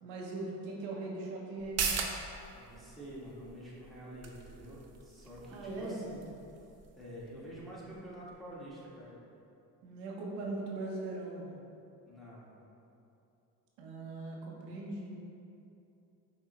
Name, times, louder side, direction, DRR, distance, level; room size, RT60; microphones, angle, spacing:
voice 1, 0.0-1.9 5.4-6.0 9.8-11.6 13.8-15.1, right 2 dB, 80° right, -2 dB, 0.7 m, -40 dB
sound 1, 1.6-8.7 9.1-9.2, right 5 dB, 35° right, 0.5 m, -41 dB
voice 2, 2.5-6.3 7.0-9.2 12.0-12.5, equal, ahead, -8 dB, 1.3 m, -48 dB
5.7 x 2.1 x 3.0 m, 2.7 s
hypercardioid pair, 50°, 45 cm